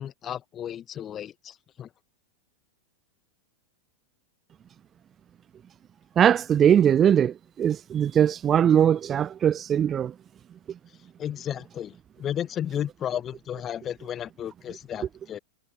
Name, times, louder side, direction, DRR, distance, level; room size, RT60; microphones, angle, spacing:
voice 1, 0.0-1.9 11.2-15.4, left 10 dB, 25° left, 1.4 m, -33 dB
voice 2, 6.2-10.1, right 9 dB, 25° right, 0.4 m, -21 dB
figure-of-eight pair, 90°, 0 cm